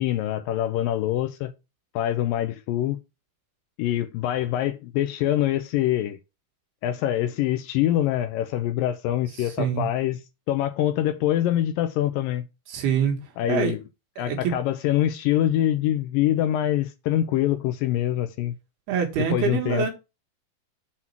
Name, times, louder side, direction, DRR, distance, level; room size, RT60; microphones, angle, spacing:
voice 1, 0.0-1.5 2.0-3.0 3.8-6.2 6.8-10.2 10.5-12.5 13.4-13.8 14.2-18.5 19.2-19.9, left 12 dB, 80° left, 2.1 m, -24 dB
voice 2, 9.4-9.9 12.7-13.2 13.5-13.8 14.2-14.5 18.9-19.9, right 8 dB, 85° right, 3.6 m, -25 dB
7.4 x 4.1 x 5.8 m
omnidirectional pair, 4.4 m